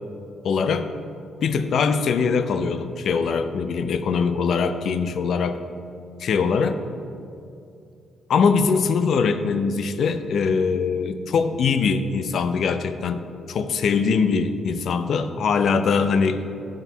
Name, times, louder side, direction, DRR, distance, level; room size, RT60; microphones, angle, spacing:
voice 1, 0.4-0.9 1.4-5.6 6.2-6.8 8.3-16.4, left 5 dB, 65° left, 10 dB, 0.5 m, -22 dB
11.0 x 4.4 x 4.0 m, 2.5 s
cardioid pair, 90°, 0 cm